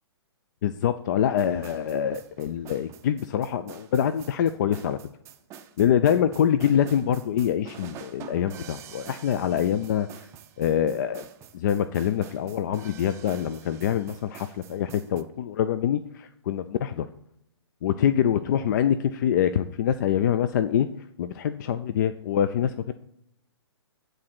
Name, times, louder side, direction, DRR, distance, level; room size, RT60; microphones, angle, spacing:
voice 1, 0.6-5.0 5.8-10.3 10.6-11.3 11.5-17.1 17.8-20.9 21.2-22.9, left 9 dB, 40° left, 11 dB, 0.4 m, -25 dB
sound 1, 1.4-15.2, right 9 dB, 20° right, 0.5 m, -47 dB
9.8 x 3.9 x 6.0 m, 0.79 s
figure-of-eight pair, 125°, 15 cm